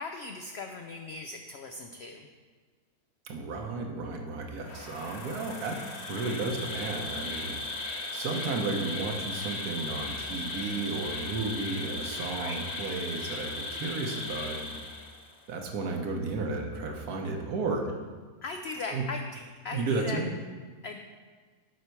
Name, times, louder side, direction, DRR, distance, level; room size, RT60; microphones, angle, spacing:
voice 1, 0.0-2.3 12.4-12.6 18.4-20.2 20.8-21.0, left 3 dB, 75° left, 5 dB, 0.5 m, -39 dB
voice 2, 3.2-5.8 6.1-7.6 8.1-14.8 15.5-17.9 18.9-19.0 19.7-20.3, right 3 dB, 75° right, 2 dB, 1.4 m, -33 dB
Insect, 4.6-15.4, left 3 dB, 50° left, 1.1 m, -37 dB
7.9 x 5.7 x 4.5 m, 1.5 s
omnidirectional pair, 1.7 m